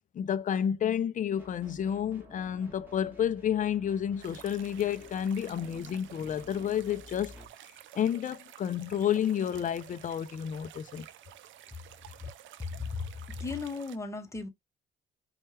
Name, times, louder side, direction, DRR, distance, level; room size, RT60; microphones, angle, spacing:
voice 1, 0.1-7.4 7.9-11.1, left 9 dB, 40° left, 0.4 m, -30 dB
sound 1, 1.4-7.5, equal, 10° right, 1.5 m, -53 dB
sound 2, 4.2-14.0, right 11 dB, 75° right, 0.5 m, -51 dB
voice 2, 12.6-13.1 13.4-14.5, left 4 dB, 15° left, 0.9 m, -35 dB
4.2 x 2.4 x 3.2 m
cardioid pair, 90°, 20 cm